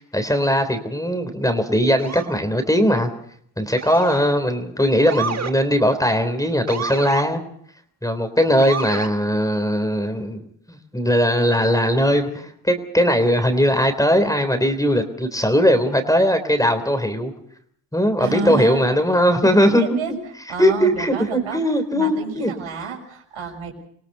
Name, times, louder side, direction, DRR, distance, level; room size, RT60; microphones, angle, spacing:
voice 1, 0.0-3.1 3.6-7.4 8.0-17.3 17.9-20.0 20.6-22.5, equal, 5° left, 8 dB, 3.5 m, -19 dB
Motor vehicle (road) / Siren, 2.0-2.4 3.8-4.3 5.1-5.6 6.7-7.3 8.6-9.1, right 6 dB, 30° right, 1.6 m, -29 dB
voice 2, 18.2-18.8 19.4-20.1 20.5-21.6 21.9-23.7, right 5 dB, 75° right, 2 dB, 6.2 m, -29 dB
26.5 x 18.0 x 5.7 m, 0.66 s
supercardioid pair, 65°, 49 cm